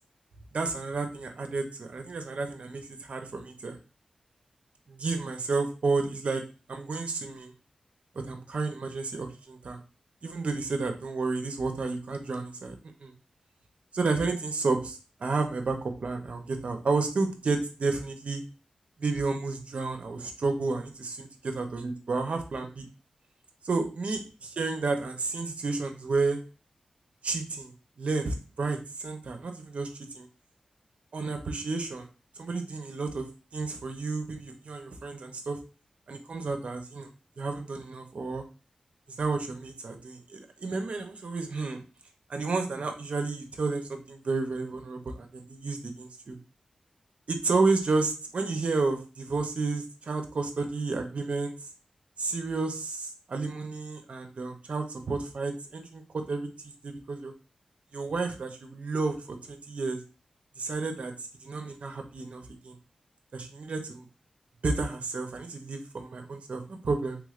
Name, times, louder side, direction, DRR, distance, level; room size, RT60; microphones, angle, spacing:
voice 1, 0.5-3.8 4.9-6.4 6.7-7.5 8.2-9.8 10.2-12.7 13.0-13.1 13.9-18.4 19.0-22.9 23.6-26.4 27.2-27.7 28.0-30.3 31.1-32.1 32.4-33.2 33.5-35.6 36.1-37.1 37.4-38.4 39.2-41.8 42.3-46.4 47.3-51.6 52.2-56.5 56.8-57.3 57.9-59.2 59.5-60.0 60.6-62.8 63.3-64.1 64.6-67.2, right 3 dB, 60° right, 5 dB, 0.6 m, -31 dB
3.4 x 3.1 x 2.4 m, 0.34 s
wide cardioid pair, 100°, 2 cm